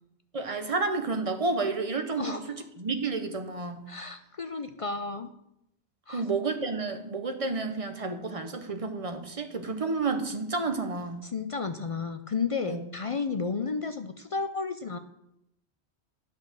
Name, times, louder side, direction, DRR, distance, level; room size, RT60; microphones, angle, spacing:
voice 1, 0.3-3.9 6.1-11.2 12.6-12.8, right 3 dB, 35° right, 7 dB, 0.9 m, -30 dB
voice 2, 3.9-5.3 6.1-6.2 11.2-15.0, left 4 dB, 50° left, 9 dB, 0.4 m, -32 dB
9.8 x 5.6 x 6.3 m, 0.81 s
omnidirectional pair, 1.1 m